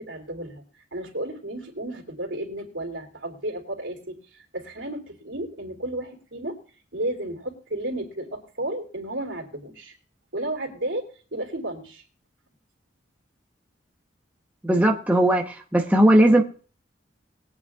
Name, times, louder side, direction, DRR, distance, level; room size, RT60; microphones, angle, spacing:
voice 1, 0.0-6.6 6.9-9.9 10.3-12.0, right 1 dB, 80° right, 2 dB, 2.9 m, -33 dB
voice 2, 14.6-16.4, right 1 dB, 10° right, 1 dB, 1.0 m, -18 dB
21.5 x 8.6 x 2.4 m, 0.40 s
head